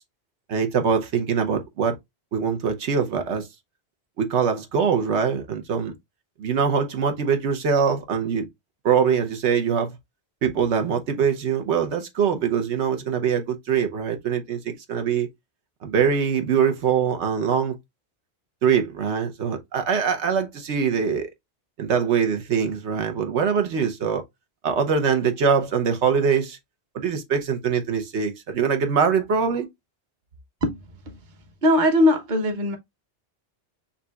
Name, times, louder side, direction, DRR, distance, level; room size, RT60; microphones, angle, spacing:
voice 1, 0.5-1.9 2.3-3.5 4.2-5.9 6.4-8.5 8.8-10.0 10.4-15.3 15.8-17.7 18.6-21.3 21.8-24.2 24.6-26.6 26.9-29.7, right 6 dB, 85° right, 1.1 m, -23 dB
voice 2, 31.6-32.8, left 1 dB, 45° right, 1.1 m, -20 dB
6.5 x 2.8 x 2.3 m
omnidirectional pair, 1.1 m